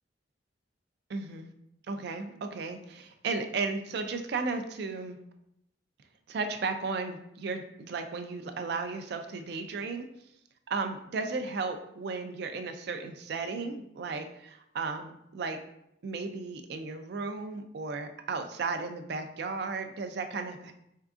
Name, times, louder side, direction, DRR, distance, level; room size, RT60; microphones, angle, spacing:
voice 1, 1.1-1.5 1.9-5.2 6.3-10.1 10.7-15.6 16.0-20.7, right 4 dB, 60° right, 7 dB, 0.4 m, -34 dB
3.6 x 3.3 x 2.4 m, 0.79 s
head